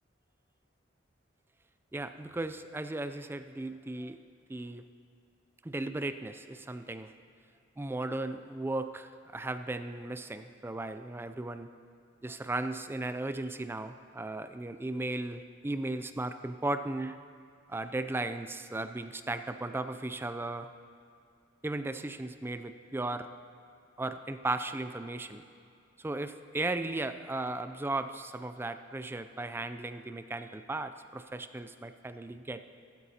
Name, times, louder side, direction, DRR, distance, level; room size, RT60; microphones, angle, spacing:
voice 1, 1.9-4.2 4.5-4.8 5.6-7.1 7.8-11.7 12.2-17.2 17.7-20.7 21.6-23.3 24.0-25.4 26.0-32.6, right 2 dB, 10° right, 9 dB, 0.3 m, -36 dB
15.0 x 12.5 x 2.8 m, 2.5 s
head